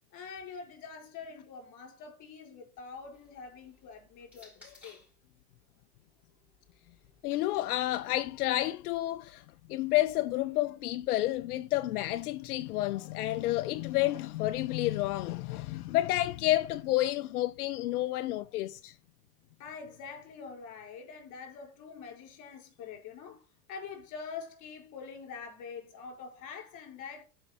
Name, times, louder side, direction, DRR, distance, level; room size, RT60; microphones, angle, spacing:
voice 1, 0.1-5.0 19.6-27.2, left 5 dB, 40° left, 4.3 m, -45 dB
sound 1, 2.8-5.2 6.2-8.3, left 3 dB, 5° right, 5.9 m, -61 dB
voice 2, 7.2-9.4 9.7-18.9, left 16 dB, 80° left, 0.6 m, -30 dB
12.0 x 5.3 x 3.5 m
supercardioid pair, 115°, 45 cm